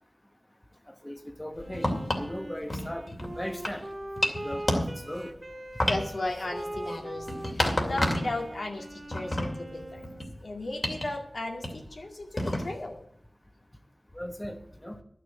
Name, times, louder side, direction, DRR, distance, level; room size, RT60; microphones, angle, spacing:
voice 1, 0.9-1.9 2.2-3.9 4.2-5.3 14.1-15.0, equal, 15° left, 6 dB, 1.1 m, -38 dB
sound 1, 1.6-2.3 2.7-3.8 4.2-5.3 5.8-8.4 8.8-10.3 10.8-11.1 11.6-11.9 12.4-12.9, left 1 dB, 40° left, 2.4 m, -30 dB
Wind instrument woodwind instrument, 1.6-10.4, right 1 dB, 40° right, 2.0 m, -41 dB
voice 2, 5.8-10.1 10.4-13.0, left 2 dB, 75° left, 1 dB, 2.4 m, -35 dB
11.5 x 6.6 x 8.5 m, 0.75 s
wide cardioid pair, 50°, 0 cm